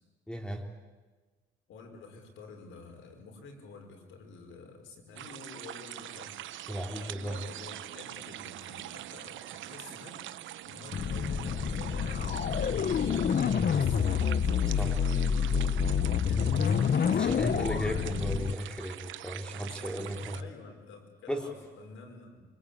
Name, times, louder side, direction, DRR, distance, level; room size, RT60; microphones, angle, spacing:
voice 1, 0.3-0.6 6.7-7.4 14.8-14.9 17.1-20.4 21.3-21.5, equal, 5° left, 4 dB, 3.7 m, -35 dB
voice 2, 1.7-6.4 7.0-15.7 16.2-17.2 19.5-22.4, left 4 dB, 80° left, 4 dB, 5.7 m, -49 dB
sound 1, 5.2-20.4, right 13 dB, 75° right, 0.9 m, -44 dB
sound 2, 10.9-18.5, left 7 dB, 50° left, 1.1 m, -28 dB
25.0 x 25.0 x 8.7 m, 1.3 s
cardioid pair, 90°, 20 cm